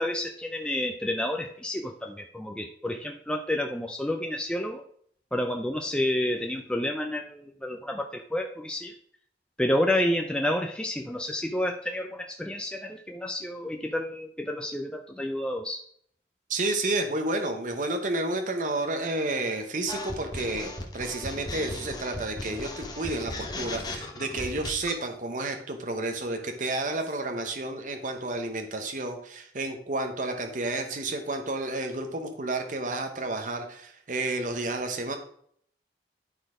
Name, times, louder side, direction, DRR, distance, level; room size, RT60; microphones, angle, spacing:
voice 1, 0.0-4.8 5.3-8.9 9.6-15.8, left 1 dB, 5° left, 3 dB, 0.5 m, -30 dB
voice 2, 16.5-35.2, right 2 dB, 45° right, 5 dB, 1.0 m, -31 dB
sound 1, 19.9-25.0, left 2 dB, 25° left, 1.1 m, -36 dB
11.0 x 4.2 x 5.0 m, 0.63 s
head